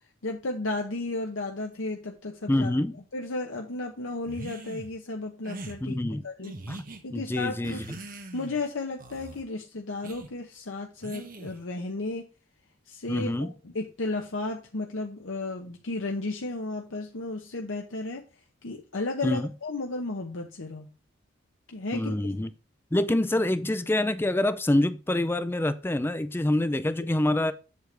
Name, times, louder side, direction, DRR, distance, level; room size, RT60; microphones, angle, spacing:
voice 1, 0.2-2.7 3.1-6.0 6.2-6.5 7.0-7.8 8.3-12.3 12.9-18.2 18.6-20.9 21.7-22.1, left 2 dB, 85° left, 0.9 m, -33 dB
voice 2, 2.5-3.0 5.8-6.2 6.7-6.8 7.1-8.0 13.1-13.5 19.2-19.5 21.9-22.5 22.9-27.5, left 1 dB, 10° left, 0.4 m, -26 dB
sound 1, 4.3-4.9 5.4-5.8 6.4-7.0 7.6-8.6 9.0-9.4 10.0-10.3 11.0-11.6, right 2 dB, 45° right, 1.3 m, -41 dB
8.0 x 6.6 x 3.3 m
head